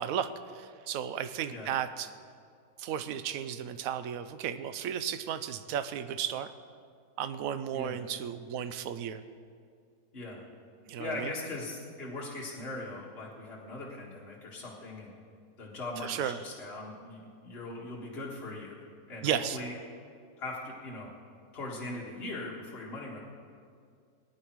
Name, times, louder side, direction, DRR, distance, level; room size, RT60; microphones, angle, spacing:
voice 1, 0.0-2.1 2.8-6.5 7.2-9.2 10.9-11.3 16.0-16.4 19.2-19.6, right 9 dB, 65° right, 11 dB, 1.0 m, -34 dB
voice 2, 11.0-15.1 15.6-18.7 19.1-19.7 20.4-21.1 21.5-23.2, left 2 dB, 35° left, -5 dB, 2.0 m, -40 dB
19.5 x 10.0 x 4.7 m, 2.2 s
omnidirectional pair, 1.8 m